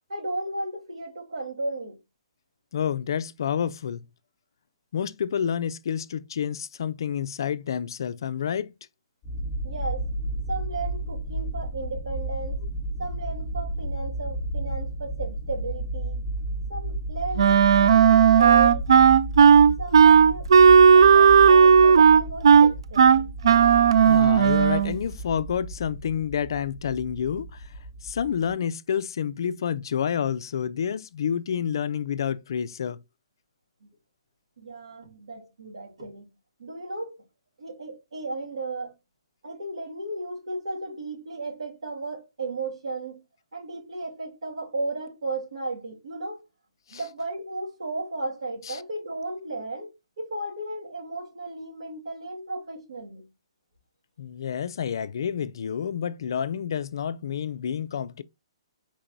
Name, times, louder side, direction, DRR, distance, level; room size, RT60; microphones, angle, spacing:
voice 1, 0.1-2.0 9.6-10.1 10.5-12.6 13.0-16.2 16.7-18.8 19.8-23.3 34.6-36.3 36.6-37.2 37.6-38.9 39.4-43.2 43.5-46.4 46.9-49.9 50.2-53.3, right 2 dB, 75° right, 2.8 m, -34 dB
voice 2, 2.7-4.0 4.9-8.7 24.1-27.6 28.0-33.0 46.9-47.0 48.6-48.8 54.2-58.2, left 8 dB, 45° left, 0.4 m, -29 dB
sound 1, 9.2-28.5, right 1 dB, 5° left, 2.3 m, -33 dB
Wind instrument woodwind instrument, 17.4-24.9, right 7 dB, 55° right, 0.3 m, -14 dB
4.5 x 4.4 x 2.6 m
hypercardioid pair, 175°, 3 cm